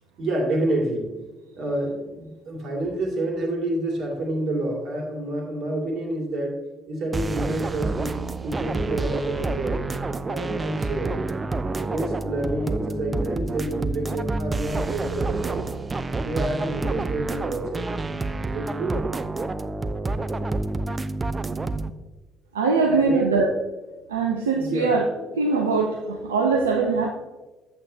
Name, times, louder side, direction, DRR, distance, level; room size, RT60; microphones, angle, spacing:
voice 1, 0.2-1.1 1.6-6.6 6.9-8.2 8.4-9.9 10.2-11.2 11.7-15.7 16.2-17.9 18.4-19.1 22.8-23.3 24.6-24.9, right 1 dB, 55° right, 0 dB, 2.2 m, -28 dB
sound 1, 7.1-21.9, right 3 dB, 25° right, 0.5 m, -28 dB
voice 2, 22.5-23.5 24.1-25.0 25.3-27.1, right 4 dB, 80° right, 1 dB, 0.6 m, -22 dB
8.7 x 8.0 x 2.7 m, 1.1 s
figure-of-eight pair, 50°, 0 cm